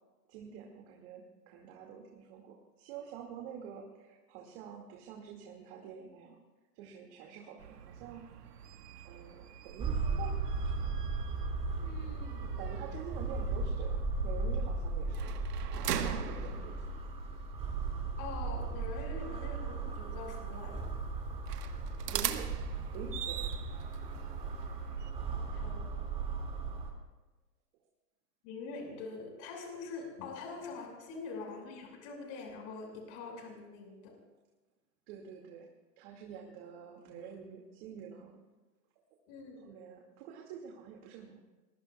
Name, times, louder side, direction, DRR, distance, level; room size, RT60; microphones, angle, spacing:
voice 1, 0.3-6.4 6.7-8.3 9.0-10.4 12.6-15.3 15.8-16.8 22.1-23.4 35.1-35.7 36.0-38.4 39.6-41.4, right 7 dB, 40° right, 0 dB, 2.3 m, -47 dB
sound 1, 7.6-25.1, right 10 dB, 65° right, 1.6 m, -43 dB
sound 2, 9.8-26.9, right 4 dB, 10° right, 2.4 m, -36 dB
voice 2, 11.8-12.5 18.2-20.8 25.3-25.9 28.4-34.1 39.3-39.6, left 4 dB, 40° left, 1 dB, 5.9 m, -44 dB
27.5 x 22.0 x 2.4 m, 1.2 s
hypercardioid pair, 135°, 50 cm